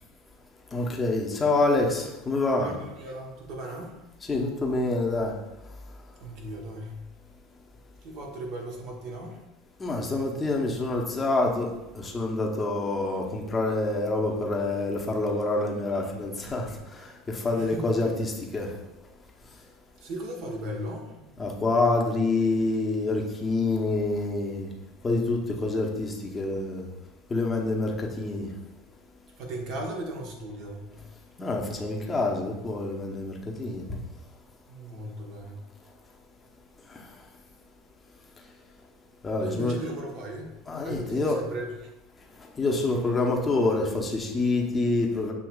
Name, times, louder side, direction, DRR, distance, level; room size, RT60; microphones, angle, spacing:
voice 1, 0.7-2.7 4.2-5.3 9.8-11.7 11.9-18.7 21.4-24.7 25.0-26.9 27.3-28.5 31.4-34.0 39.2-39.8 40.7-41.4 42.6-45.3, left 2 dB, 20° left, 0 dB, 0.8 m, -27 dB
voice 2, 2.5-3.9 6.2-6.9 8.0-9.4 16.5-16.6 17.5-17.8 20.0-21.3 29.4-31.0 34.7-35.6 39.4-40.5 40.8-41.7, right 1 dB, 60° right, 0 dB, 1.0 m, -37 dB
6.4 x 2.8 x 2.3 m, 0.96 s
hypercardioid pair, 95°, 0 cm